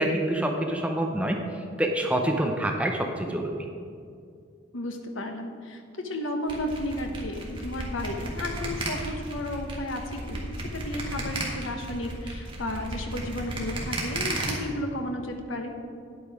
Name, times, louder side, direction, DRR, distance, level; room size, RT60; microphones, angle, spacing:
voice 1, 0.0-1.4 1.8-3.6, right 1 dB, 5° right, 2 dB, 0.6 m, -26 dB
voice 2, 4.7-15.7, left 1 dB, 90° left, 4 dB, 1.1 m, -33 dB
sound 1, 6.5-14.5, right 2 dB, 25° right, 1.6 m, -33 dB
9.4 x 8.4 x 4.8 m, 2.3 s
head